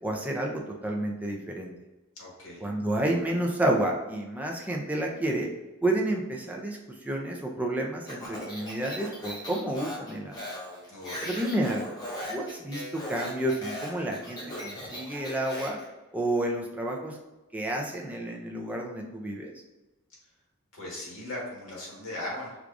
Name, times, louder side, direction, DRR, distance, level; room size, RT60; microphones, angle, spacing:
voice 1, 0.0-1.7 2.6-5.5 5.8-10.4 11.2-11.9 12.3-15.8 16.1-17.2 17.5-19.5, right 1 dB, 5° right, 0 dB, 0.4 m, -30 dB
voice 2, 2.2-2.7 10.9-11.3 20.7-22.6, left 1 dB, 75° left, -3 dB, 1.4 m, -38 dB
Speech, 8.0-15.8, equal, 20° left, 0.8 m, -38 dB
4.6 x 2.3 x 2.5 m, 1.1 s
head